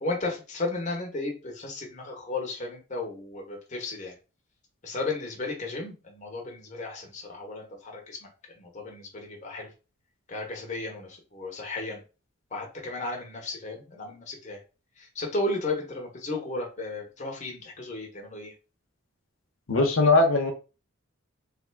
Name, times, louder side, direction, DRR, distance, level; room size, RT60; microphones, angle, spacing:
voice 1, 0.0-4.1 4.8-8.3 8.6-9.7 10.3-12.0 12.5-14.6 15.0-18.5, left 2 dB, 35° left, 0 dB, 1.0 m, -34 dB
voice 2, 19.7-20.5, left 3 dB, 80° left, 3 dB, 0.7 m, -20 dB
3.6 x 3.4 x 2.3 m, 0.31 s
head